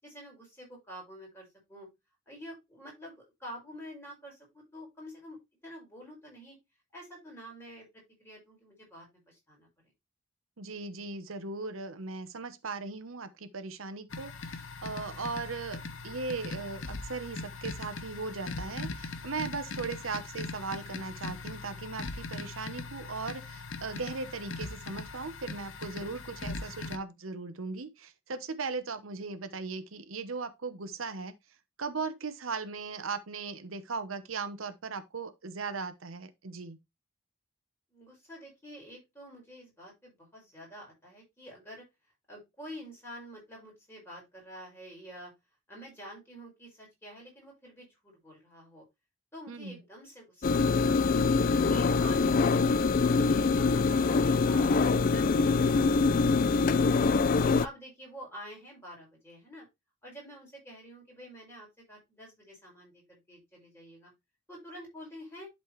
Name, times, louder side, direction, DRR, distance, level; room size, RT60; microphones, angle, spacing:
voice 1, 0.0-1.9 2.3-5.4 5.6-6.6 6.9-9.7 25.9-26.1 37.9-41.8 42.3-45.3 45.7-48.8 49.3-51.3 51.7-57.1 57.6-59.7 60.0-64.1 64.5-65.5, equal, 10° left, 4.9 m, -48 dB
voice 2, 10.6-31.3 31.8-36.8 49.5-49.8, right 4 dB, 85° right, 0.9 m, -38 dB
sound 1, 14.1-27.0, left 3 dB, 65° left, 0.9 m, -40 dB
sound 2, 50.4-57.7, left 4 dB, 45° left, 0.4 m, -24 dB
11.5 x 4.2 x 3.1 m
head